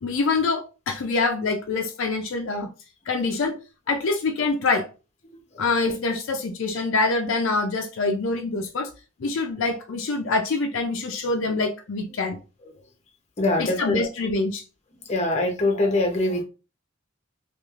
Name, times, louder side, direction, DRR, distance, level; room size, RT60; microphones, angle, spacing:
voice 1, 0.0-2.7 3.1-3.6 3.9-4.9 5.6-8.9 9.2-12.4 13.6-14.6, left 3 dB, 70° left, 0.4 m, -25 dB
voice 2, 13.4-14.0 15.1-16.4, left 2 dB, 35° left, 0.7 m, -23 dB
3.0 x 2.4 x 2.4 m
head